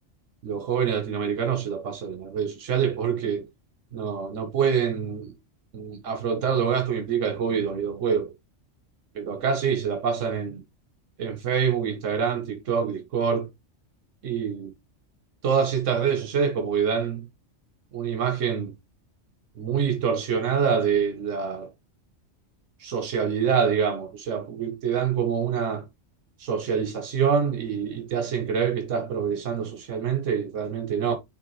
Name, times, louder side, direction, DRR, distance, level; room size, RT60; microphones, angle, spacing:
voice 1, 0.4-3.5 3.9-5.3 5.7-8.3 9.2-10.6 11.2-13.5 14.2-14.7 15.4-17.2 17.9-18.7 19.6-21.7 22.8-25.8 26.4-31.2, right 7 dB, 85° right, 1.3 m, -26 dB
9.6 x 3.4 x 3.1 m
omnidirectional pair, 1.2 m